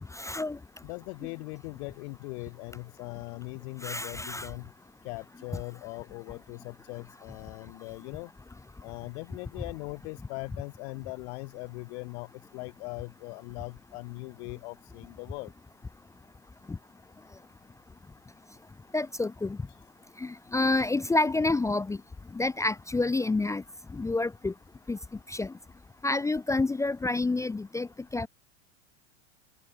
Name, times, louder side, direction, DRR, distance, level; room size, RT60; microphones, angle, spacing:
voice 1, 0.1-0.6 3.8-4.5 16.7-16.8 18.9-19.6 20.2-22.0 22.3-23.6 23.9-24.5 24.9-25.0 25.3-25.5 26.0-28.3, left 2 dB, 10° left, 0.7 m, -28 dB
voice 2, 0.8-4.7 5.0-8.3 8.8-15.5, left 29 dB, 60° left, 4.1 m, -40 dB
hypercardioid pair, 100°, 35 cm